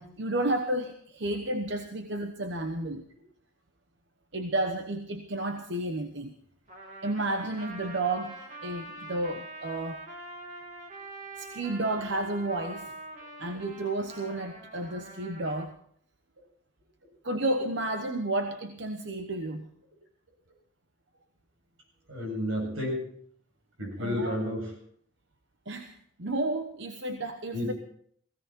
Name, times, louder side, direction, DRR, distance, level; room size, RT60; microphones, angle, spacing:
voice 1, 0.0-3.0 4.3-6.4 7.0-10.0 11.4-12.9 13.4-15.7 17.2-19.7 24.0-24.4 25.7-27.7, right 2 dB, 60° right, 6 dB, 1.0 m, -32 dB
Trumpet, 6.7-15.7, right 2 dB, 35° right, 3.0 m, -44 dB
voice 2, 22.1-23.1 23.8-24.7 27.5-27.7, left 1 dB, 85° right, 0 dB, 7.4 m, -31 dB
17.0 x 16.5 x 4.4 m, 0.63 s
head